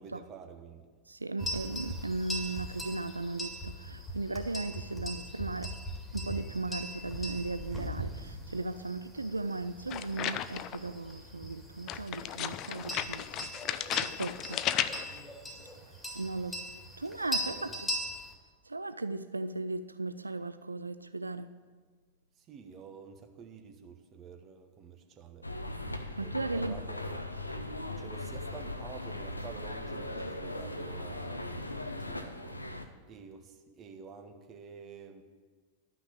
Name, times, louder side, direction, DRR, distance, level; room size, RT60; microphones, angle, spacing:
voice 1, 0.0-0.9 4.1-4.2 17.5-17.8 22.3-25.5 26.0-27.3 27.9-35.2, right 6 dB, 30° right, 1.1 m, -49 dB
voice 2, 1.1-5.8 6.1-14.6 16.1-16.7 17.0-17.7 18.7-21.5 26.2-26.8, right 2 dB, 80° right, 0.3 m, -37 dB
sound 1, 1.4-18.3, equal, 5° left, 2.1 m, -40 dB
sound 2, 9.9-10.9 11.9-15.2, left 11 dB, 35° left, 0.4 m, -34 dB
sound 3, 25.4-32.8, left 1 dB, 85° left, 0.7 m, -39 dB
11.5 x 6.0 x 8.5 m
figure-of-eight pair, 90°, 0 cm